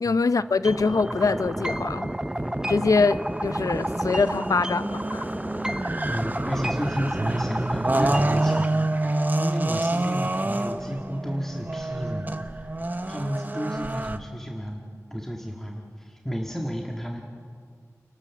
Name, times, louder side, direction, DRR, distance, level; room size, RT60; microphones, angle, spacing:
voice 1, 0.0-2.1 2.7-5.3, left 4 dB, 75° left, 0.6 m, -23 dB
sound 1, 0.6-8.6, right 1 dB, 10° right, 0.5 m, -30 dB
sound 2, 0.7-14.2, right 2 dB, 30° right, 0.9 m, -29 dB
voice 2, 6.1-12.8 13.1-14.8 15.1-17.2, equal, 5° left, 1.7 m, -32 dB
29.5 x 12.5 x 7.3 m
wide cardioid pair, 70°, 6 cm